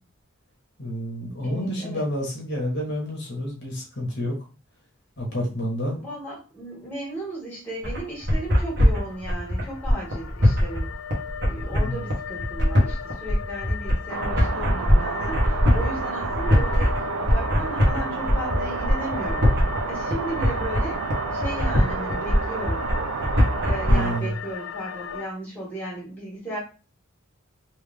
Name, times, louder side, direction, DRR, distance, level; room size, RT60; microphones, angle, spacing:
voice 1, 0.8-4.4 5.2-6.0 11.7-12.0 23.9-24.3, equal, 55° left, -1 dB, 1.3 m, -29 dB
voice 2, 1.4-2.0 6.0-10.9 11.5-19.5 19.9-22.9 23.6-26.6, right 1 dB, 10° left, -6 dB, 1.6 m, -35 dB
sound 1, 7.8-23.9, left 1 dB, 50° right, 1.3 m, -22 dB
sound 2, 7.9-25.2, left 8 dB, 85° left, 0.4 m, -37 dB
sound 3, 14.1-24.2, right 6 dB, 85° right, 0.4 m, -30 dB
3.5 x 3.0 x 3.4 m, 0.33 s
head